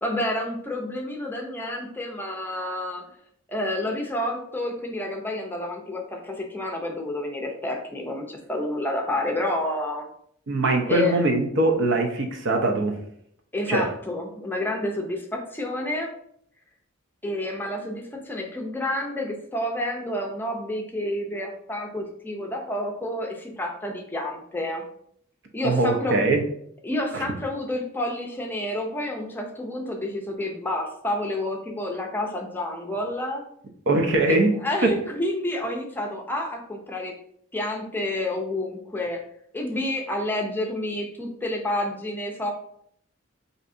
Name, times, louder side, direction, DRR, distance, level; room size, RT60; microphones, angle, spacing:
voice 1, 0.0-3.1 3.5-10.1 10.9-11.2 13.5-16.1 17.2-24.8 25.5-26.2 26.8-33.4 34.3-34.4 34.6-37.2 37.5-39.2 39.5-42.5, left 1 dB, 10° left, 1 dB, 0.5 m, -29 dB
voice 2, 10.5-13.0 13.7-13.9 25.6-26.4 33.9-34.5, right 2 dB, 65° right, 3 dB, 0.6 m, -22 dB
4.4 x 2.7 x 2.5 m, 0.67 s
head